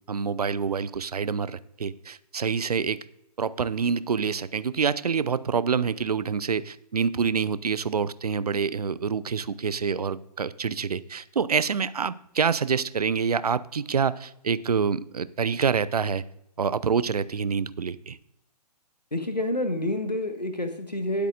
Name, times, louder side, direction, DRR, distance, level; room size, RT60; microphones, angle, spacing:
voice 1, 0.1-3.0 3.4-16.2 16.6-18.2, right 6 dB, 70° right, 18 dB, 0.6 m, -27 dB
voice 2, 19.1-21.3, left 1 dB, 90° left, 7 dB, 1.5 m, -28 dB
19.0 x 8.2 x 2.5 m, 0.78 s
figure-of-eight pair, 125°, 21 cm